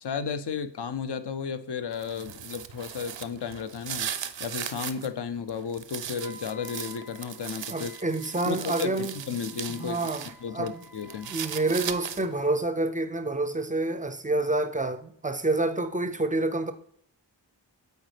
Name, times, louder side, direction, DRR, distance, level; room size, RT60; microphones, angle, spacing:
voice 1, 0.0-4.1 4.4-7.9 8.4-10.0 10.4-11.4, left 6 dB, 60° left, 0.6 m, -33 dB
sound 1, 1.9-5.1 5.5-10.3 10.7-12.4, right 9 dB, 70° right, 0.5 m, -38 dB
Wind instrument woodwind instrument, 6.2-12.3, left 2 dB, 80° left, 2.7 m, -52 dB
voice 2, 7.7-9.1 9.7-10.8 11.3-16.7, right 2 dB, 20° right, 0.4 m, -28 dB
7.9 x 4.0 x 3.3 m
wide cardioid pair, 40°, 46 cm